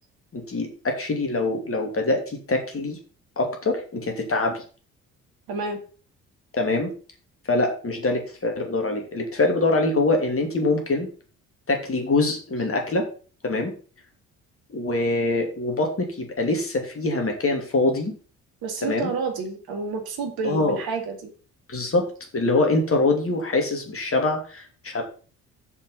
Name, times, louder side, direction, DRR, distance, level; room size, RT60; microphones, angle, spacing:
voice 1, 0.3-3.0 3.4-4.6 6.5-6.9 7.5-11.1 11.7-13.1 13.4-13.7 14.7-18.1 18.8-19.1 20.4-20.8 21.7-22.1 22.3-25.0, left 2 dB, 30° left, 3 dB, 2.8 m, -24 dB
voice 2, 5.5-5.8 18.6-21.3, right 4 dB, 55° right, 4 dB, 2.3 m, -29 dB
7.0 x 5.5 x 6.9 m, 0.40 s
figure-of-eight pair, 50°, 42 cm